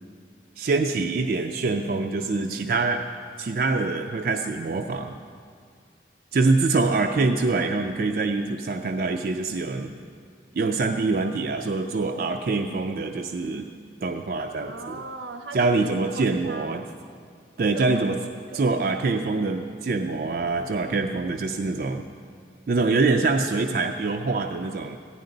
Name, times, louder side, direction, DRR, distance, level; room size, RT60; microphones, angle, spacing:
voice 1, 0.6-3.0 3.4-5.1 6.3-9.9 10.6-13.7 14.0-14.7 15.5-16.8 17.6-18.2 18.5-22.0 22.7-25.0, right 3 dB, 50° right, 4 dB, 0.4 m, -24 dB
voice 2, 14.7-16.8 17.7-18.7, right 3 dB, 85° right, 6 dB, 0.8 m, -39 dB
14.0 x 10.5 x 3.9 m, 2.1 s
head